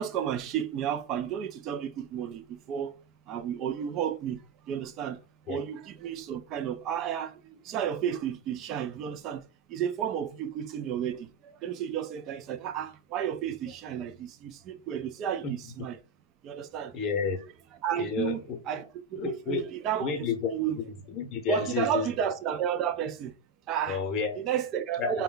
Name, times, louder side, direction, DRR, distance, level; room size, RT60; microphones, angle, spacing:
voice 1, 0.0-3.0 3.3-5.2 5.5-16.0 16.4-16.9 17.8-20.8 21.5-23.4 23.7-24.0 24.4-25.2, right 9 dB, 25° right, 0.4 m, -32 dB
voice 2, 16.9-17.4 18.0-18.6 19.1-19.7 20.0-20.5 21.1-22.1 23.9-24.4 25.0-25.2, left 6 dB, 25° left, 0.9 m, -30 dB
4.3 x 2.2 x 3.9 m
supercardioid pair, 160°, 0 cm